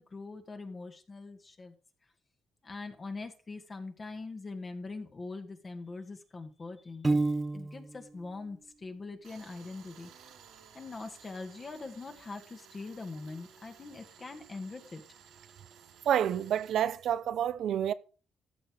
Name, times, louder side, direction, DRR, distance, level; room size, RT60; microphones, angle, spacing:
voice 1, 0.0-1.7 2.6-10.3 10.7-15.0, left 3 dB, 35° left, 1.8 m, -43 dB
Piano, 7.0-8.0, right 3 dB, 20° right, 0.5 m, -29 dB
Tools, 9.2-16.7, right 7 dB, 85° right, 3.0 m, -56 dB
voice 2, 16.1-17.9, right 10 dB, 70° right, 0.8 m, -28 dB
14.5 x 6.8 x 4.9 m
cardioid pair, 90°, 0 cm